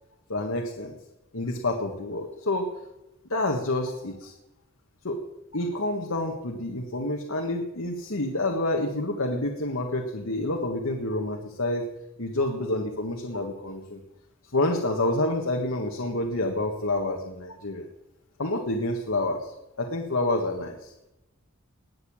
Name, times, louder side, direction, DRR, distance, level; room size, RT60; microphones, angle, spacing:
voice 1, 0.3-0.9 1.3-2.7 3.3-4.3 5.0-5.2 5.5-11.9 12.2-14.0 14.5-17.8 18.4-20.9, left 2 dB, 75° left, 2 dB, 1.7 m, -28 dB
20.5 x 6.9 x 8.8 m, 0.95 s
head